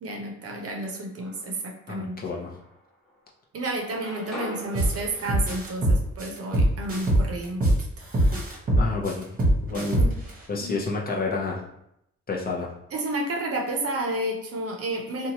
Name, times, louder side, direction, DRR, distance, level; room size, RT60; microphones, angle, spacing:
voice 1, 0.0-1.6 1.9-2.2 3.5-7.7 10.0-10.2 10.6-10.8 12.9-15.3, right 1 dB, 50° right, 1 dB, 0.7 m, -31 dB
sound 1, 0.9-1.7 2.3-3.3 3.6-7.5, equal, ahead, 1.0 m, -44 dB
voice 2, 1.9-2.5 8.8-9.3 9.6-10.0 10.5-11.6 12.3-12.7, left 3 dB, 30° left, -3 dB, 0.7 m, -29 dB
sound 2, 4.7-4.9 5.3-7.8 8.1-10.3, right 1 dB, 30° right, 1.0 m, -21 dB
2.8 x 2.3 x 2.8 m, 0.78 s
cardioid pair, 90°, 30 cm